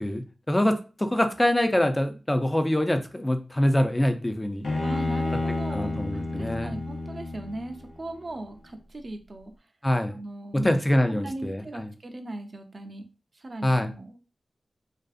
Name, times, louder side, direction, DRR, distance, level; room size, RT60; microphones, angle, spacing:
voice 1, 0.0-4.7 5.7-6.7 9.8-10.2 10.5-11.9 13.6-13.9, left 1 dB, 15° left, 7 dB, 0.4 m, -25 dB
Bowed string instrument, 4.6-7.9, left 2 dB, 75° left, 0.7 m, -30 dB
voice 2, 4.8-6.0 6.4-9.5 10.1-10.7 11.1-13.0 13.3-14.3, right 1 dB, 45° right, 6 dB, 0.5 m, -38 dB
2.5 x 2.4 x 2.4 m, 0.34 s
cardioid pair, 60°, 0 cm